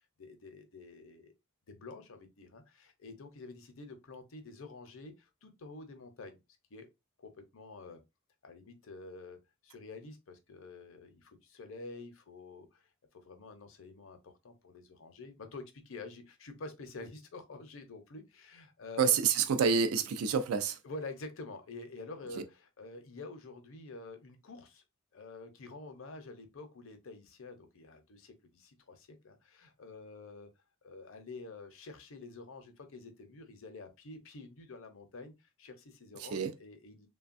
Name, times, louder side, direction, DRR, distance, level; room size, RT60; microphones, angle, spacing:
voice 1, 0.0-1.3 1.7-6.4 6.7-6.9 7.2-8.0 8.4-9.4 9.6-12.8 13.1-19.2 20.8-24.8 25.1-30.5 30.8-37.1, left 3 dB, 60° left, 0.6 m, -48 dB
voice 2, 19.0-20.8 36.3-36.5, right 6 dB, 80° right, 0.4 m, -28 dB
3.2 x 2.2 x 2.5 m
head